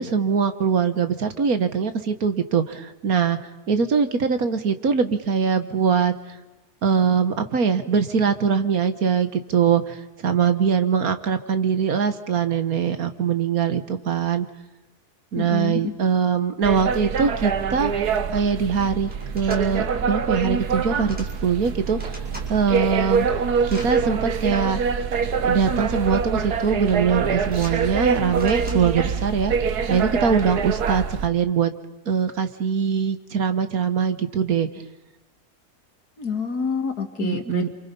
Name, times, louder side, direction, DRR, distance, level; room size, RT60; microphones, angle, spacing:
voice 1, 0.0-3.4 3.7-6.1 6.8-14.5 15.3-17.9 18.3-22.0 22.5-23.3 23.7-24.8 25.4-31.7 32.1-34.7 37.2-37.7, right 6 dB, 65° right, 10 dB, 1.8 m, -22 dB
voice 2, 15.3-16.0 36.2-37.7, left 6 dB, 75° left, 6 dB, 2.7 m, -27 dB
sound 1, 16.6-31.3, right 6 dB, 85° right, 1.7 m, -25 dB
sound 2, 17.9-18.0 18.2-18.6 19.1-19.6 20.6-21.3 21.7-22.5 23.0-23.9 24.9-25.0 25.9-26.3 26.6-27.0 27.4-29.1, equal, 5° right, 5.0 m, -43 dB
28.5 x 26.5 x 5.5 m, 1.1 s
omnidirectional pair, 1.6 m